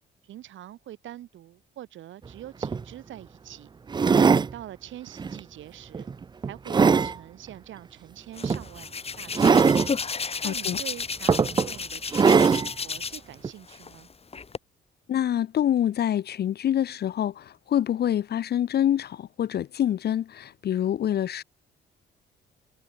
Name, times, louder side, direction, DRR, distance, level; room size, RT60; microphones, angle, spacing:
voice 1, 0.2-3.7 4.3-6.1 6.4-9.7 10.4-14.1, right 13 dB, 75° right, 2.6 m, -44 dB
sound 1, 2.3-2.4 2.6-2.8 3.9-4.5 5.2-5.4 5.9-7.1 8.4-8.6 9.3-9.9 10.7-10.8 11.3-11.7 12.1-12.7 13.4-13.5, right 5 dB, 20° right, 0.4 m, -20 dB
Hands, 8.3-13.3 13.7-14.6, left 5 dB, 30° left, 1.5 m, -33 dB
voice 2, 10.4-10.8 15.1-21.4, left 10 dB, 55° left, 0.7 m, -26 dB
cardioid pair, 90°, 20 cm